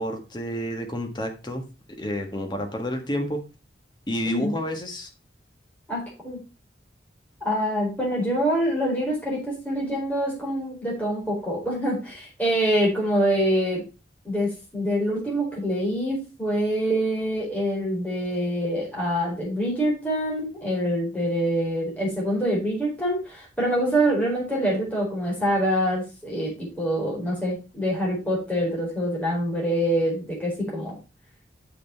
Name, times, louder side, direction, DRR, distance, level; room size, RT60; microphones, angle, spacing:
voice 1, 0.0-1.7 2.0-3.4 4.1-5.1, equal, 25° left, 3 dB, 1.5 m, -29 dB
voice 2, 5.9-6.4 7.4-13.8 14.2-31.0, equal, 10° left, -4 dB, 4.5 m, -25 dB
7.8 x 5.7 x 4.5 m, 0.30 s
head